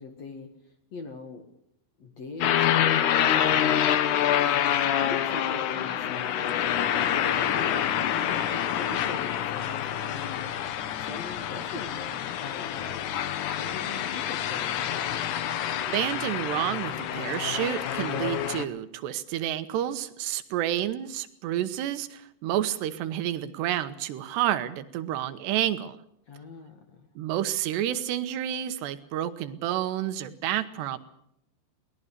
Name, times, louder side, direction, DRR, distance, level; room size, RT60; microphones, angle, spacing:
voice 1, 0.0-1.5 2.0-10.5 11.0-13.1 13.6-15.0 26.3-27.1, left 4 dB, 50° left, 5 dB, 2.2 m, -42 dB
sound 1, 2.4-18.7, left 10 dB, 80° left, 1.8 m, -27 dB
voice 2, 15.9-26.0 27.2-31.0, right 12 dB, 75° right, 11 dB, 3.0 m, -29 dB
22.5 x 19.0 x 6.7 m, 0.74 s
omnidirectional pair, 5.4 m